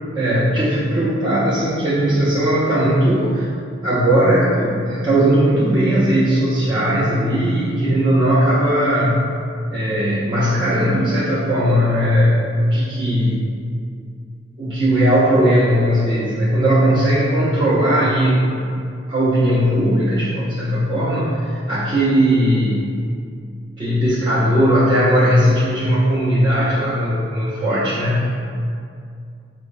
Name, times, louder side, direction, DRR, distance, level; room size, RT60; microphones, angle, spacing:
voice 1, 0.1-3.5 3.8-9.3 9.7-13.4 14.6-18.7 19.1-22.8 23.8-28.4, equal, 25° right, -11 dB, 0.4 m, -18 dB
4.8 x 2.0 x 2.4 m, 2.4 s
head